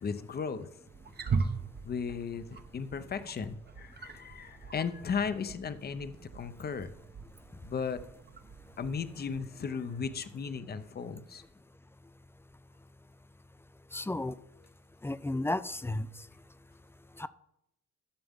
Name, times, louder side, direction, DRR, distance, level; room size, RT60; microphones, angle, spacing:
voice 1, 0.0-0.7 1.8-2.4 2.7-6.9 7.6-8.0 8.8-11.4, left 6 dB, 30° left, 12 dB, 0.7 m, -36 dB
Wild animals, 0.9-9.4, right 5 dB, 35° right, 0.8 m, -40 dB
voice 2, 13.9-14.4 15.0-16.1 17.2-17.3, left 2 dB, 10° left, 15 dB, 0.3 m, -32 dB
13.0 x 6.8 x 3.6 m, 0.83 s
cardioid pair, 90°, 30 cm